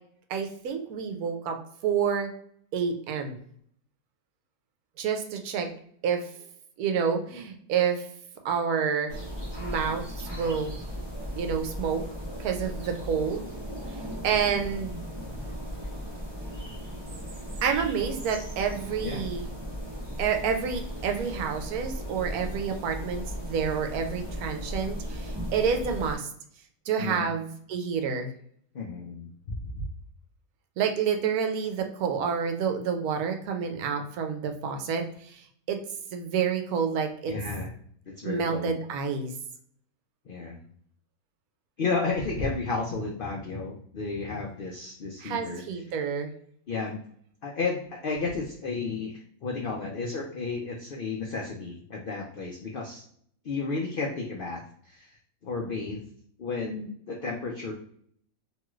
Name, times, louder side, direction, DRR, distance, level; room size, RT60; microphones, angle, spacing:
voice 1, 0.3-1.6 1.8-2.3 2.7-3.4 5.0-5.7 6.0-6.3 6.8-8.1 8.4-9.1 9.6-10.8 11.3-12.0 12.4-13.4 13.9-15.0 17.6-19.5 20.2-26.3 26.9-28.3 30.8-35.8 36.1-37.3 38.2-39.3 45.2-46.3, right 6 dB, 80° right, 5 dB, 1.1 m, -29 dB
sound 1, 9.1-26.2, equal, 20° right, 0.8 m, -37 dB
voice 2, 27.0-27.3 28.7-29.8 37.3-37.7 38.2-38.8 40.3-40.6 41.8-45.6 46.7-47.0 47.4-53.0 53.4-55.1 55.4-56.0 56.4-57.7, left 4 dB, 75° left, -1 dB, 0.5 m, -32 dB
3.0 x 2.9 x 2.3 m, 0.63 s
omnidirectional pair, 1.6 m